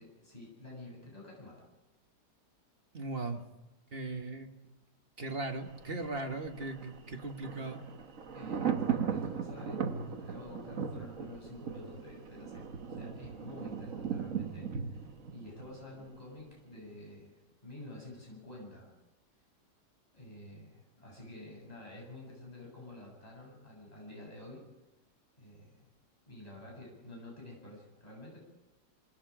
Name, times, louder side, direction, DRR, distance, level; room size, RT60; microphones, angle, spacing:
voice 1, 0.0-1.6 8.3-18.9 20.1-24.6 25.4-25.9 26.2-28.4, left 1 dB, 20° left, -3 dB, 8.3 m, -49 dB
voice 2, 2.9-3.4 3.9-4.5 5.2-7.8, right 2 dB, 35° right, 4 dB, 1.9 m, -38 dB
Thunder, 5.5-16.5 16.8-16.9, right 7 dB, 55° right, 1.6 m, -38 dB
28.0 x 20.0 x 5.0 m, 0.97 s
omnidirectional pair, 1.8 m